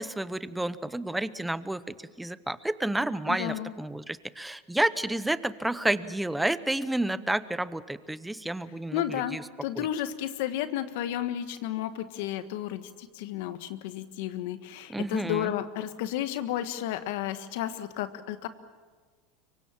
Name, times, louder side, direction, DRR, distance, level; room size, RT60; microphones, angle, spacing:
voice 1, 0.0-9.4 9.8-9.9 14.9-15.5, right 1 dB, 5° right, 14 dB, 0.8 m, -30 dB
voice 2, 3.3-3.7 8.9-18.5, left 12 dB, 70° left, 10 dB, 1.5 m, -32 dB
25.5 x 23.5 x 7.5 m, 1.4 s
supercardioid pair, 135°, 0 cm